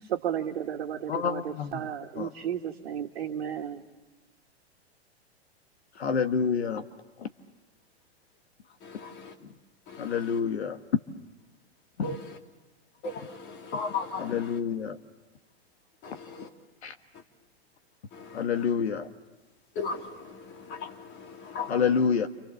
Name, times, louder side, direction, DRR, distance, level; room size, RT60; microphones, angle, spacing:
voice 1, 0.0-3.9, right 9 dB, 65° right, 2.0 m, -33 dB
voice 2, 1.1-1.7 2.2-2.3 6.0-6.8 10.0-10.8 14.3-15.0 16.8-16.9 18.3-19.1 21.7-22.3, left 6 dB, 75° left, 1.6 m, -27 dB
voice 3, 8.8-9.4 9.9-10.4 12.0-12.4 13.0-14.6 16.0-16.5 17.1-17.2 18.1-18.7 19.7-22.1, left 4 dB, 35° left, 3.4 m, -38 dB
29.5 x 27.5 x 7.1 m
hypercardioid pair, 105°, 33 cm